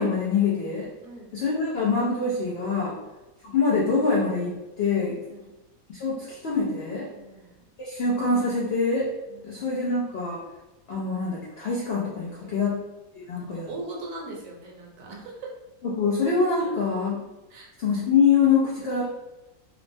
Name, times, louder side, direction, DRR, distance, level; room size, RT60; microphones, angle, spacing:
voice 1, 0.0-0.9 1.3-3.0 3.4-5.2 5.9-7.1 7.8-9.1 9.4-10.4 10.9-12.8 13.3-13.7 15.8-17.2 17.8-19.0, left 4 dB, 75° left, -5 dB, 0.5 m, -24 dB
voice 2, 1.0-1.4 2.9-3.2 5.3-5.5 7.1-7.6 9.3-9.7 12.4-12.7 13.3-15.5 16.6-16.7 17.5-17.8, right 2 dB, 65° right, -2 dB, 1.0 m, -41 dB
3.0 x 2.1 x 2.6 m, 1.0 s
omnidirectional pair, 1.7 m